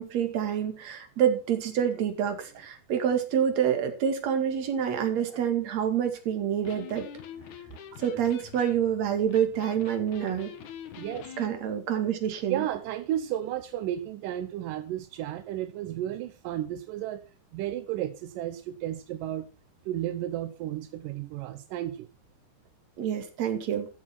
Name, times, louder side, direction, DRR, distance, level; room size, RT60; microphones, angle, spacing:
voice 1, 0.0-7.1 8.0-10.5 11.4-12.6 23.0-23.9, right 9 dB, 55° right, 7 dB, 3.2 m, -27 dB
Electric guitar, 6.5-11.5, left 8 dB, 65° left, 2.7 m, -45 dB
voice 2, 11.0-11.3 12.5-17.3 17.5-19.5 19.9-22.1, right 12 dB, 85° right, 11 dB, 2.4 m, -33 dB
13.5 x 7.8 x 6.0 m, 0.34 s
omnidirectional pair, 3.8 m